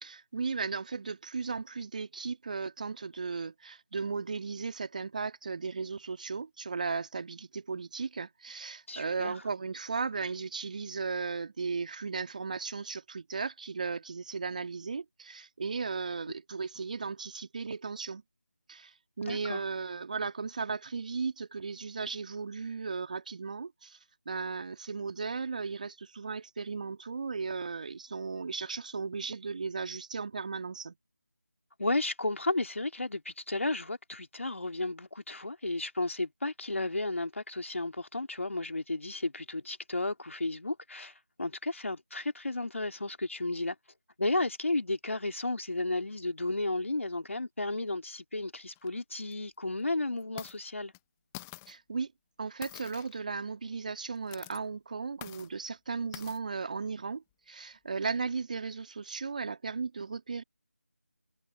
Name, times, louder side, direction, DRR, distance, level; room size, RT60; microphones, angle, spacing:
voice 1, 0.0-18.2 18.7-24.0 24.3-30.9 51.7-52.1 52.4-60.4, right 4 dB, 30° right, 2.4 m, -36 dB
voice 2, 8.9-9.3 19.2-19.6 31.8-41.1 41.4-43.8 44.2-50.9, left 2 dB, 60° left, 2.8 m, -33 dB
sound 1, 48.8-48.9 49.3-49.4 50.2-50.6 50.9-51.0 51.3-51.8 52.6-53.2 54.2-54.6 55.2-55.5 56.1-56.4, left 23 dB, 5° left, 0.7 m, -46 dB
figure-of-eight pair, 165°, 8 cm